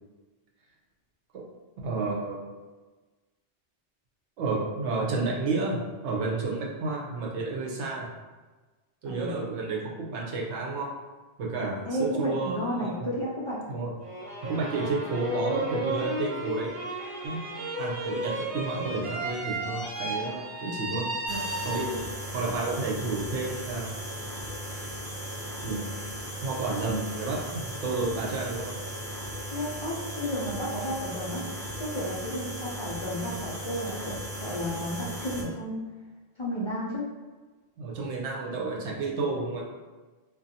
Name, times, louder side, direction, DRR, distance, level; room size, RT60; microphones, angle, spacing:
voice 1, 1.8-2.5 4.4-8.1 9.0-10.9 11.4-13.1 13.7-13.9 14.4-16.7 17.2-17.4 17.8-21.1 21.6-21.9 22.3-23.9 25.6-25.9 26.4-28.7 37.8-39.7, right 3 dB, 85° right, -1 dB, 0.9 m, -31 dB
voice 2, 9.1-9.4 11.9-13.6 20.6-20.7 21.3-21.4 21.7-21.9 29.4-31.4 31.8-35.8 36.4-37.1, equal, 50° left, -8 dB, 0.3 m, -32 dB
sound 1, 14.0-22.2, right 1 dB, 50° right, 1.3 m, -33 dB
sound 2, 21.3-35.4, equal, 25° right, 0.6 m, -37 dB
2.5 x 2.2 x 2.6 m, 1.3 s
omnidirectional pair, 1.2 m